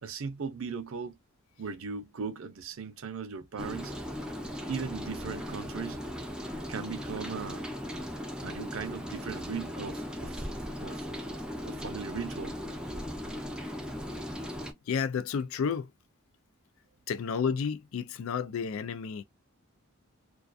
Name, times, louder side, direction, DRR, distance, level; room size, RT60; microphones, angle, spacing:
voice 1, 0.0-1.2 1.6-3.9 4.7-6.0 6.7-7.7 8.4-10.4 10.8-12.6, right 5 dB, 65° right, 0.5 m, -38 dB
Rain, 3.6-14.7, equal, 5° right, 0.4 m, -38 dB
voice 2, 14.9-15.9 17.1-19.2, left 6 dB, 65° left, 0.3 m, -31 dB
2.3 x 2.3 x 2.5 m
head